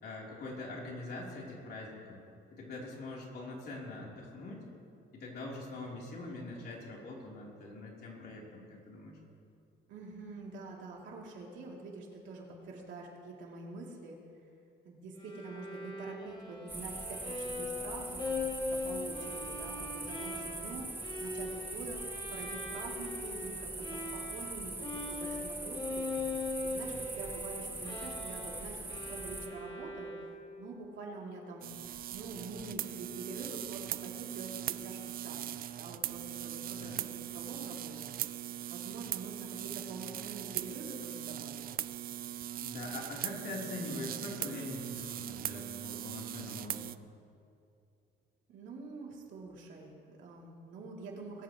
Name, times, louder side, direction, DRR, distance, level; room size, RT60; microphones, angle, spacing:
voice 1, 0.0-2.2 2.5-4.6 5.1-9.2 26.9-27.1 36.7-37.0 42.6-46.9, left 2 dB, 55° left, -3 dB, 3.5 m, -43 dB
voice 2, 9.9-14.2 14.8-18.3 18.6-26.1 26.6-31.7 32.1-38.1 38.7-41.6 48.5-51.4, right 3 dB, 80° right, -2 dB, 2.9 m, -46 dB
Bowed string instrument, 15.2-24.6 24.8-30.6, left 2 dB, 25° left, 2.3 m, -41 dB
sound 1, 16.7-29.5, right 2 dB, 10° right, 1.1 m, -42 dB
sound 2, 31.6-47.0, right 12 dB, 50° right, 0.4 m, -40 dB
21.0 x 13.5 x 3.1 m, 2.5 s
cardioid pair, 125°, 19 cm